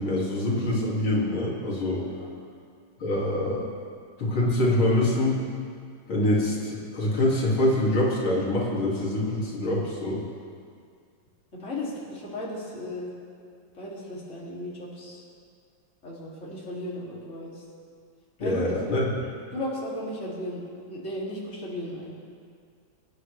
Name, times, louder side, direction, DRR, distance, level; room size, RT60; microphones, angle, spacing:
voice 1, 0.0-2.0 3.0-3.7 4.2-5.4 6.1-10.2 18.4-19.1, left 1 dB, 90° left, -5 dB, 3.2 m, -25 dB
voice 2, 2.0-2.3 11.5-13.1 13.7-15.2 16.0-17.6 18.4-18.9 19.2-20.6 20.9-22.2, left 1 dB, 35° left, -6 dB, 3.0 m, -35 dB
25.0 x 9.8 x 3.3 m, 2.2 s
omnidirectional pair, 2.2 m